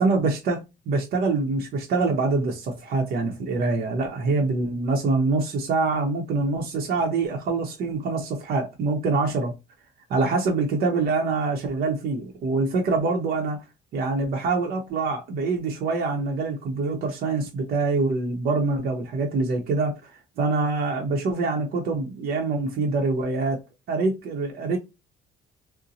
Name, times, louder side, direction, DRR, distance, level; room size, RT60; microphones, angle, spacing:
voice 1, 0.0-9.5 10.1-13.6 13.9-23.6 23.9-24.8, right 3 dB, 65° right, 0.8 m, -25 dB
2.7 x 2.2 x 3.9 m
cardioid pair, 110°, 17 cm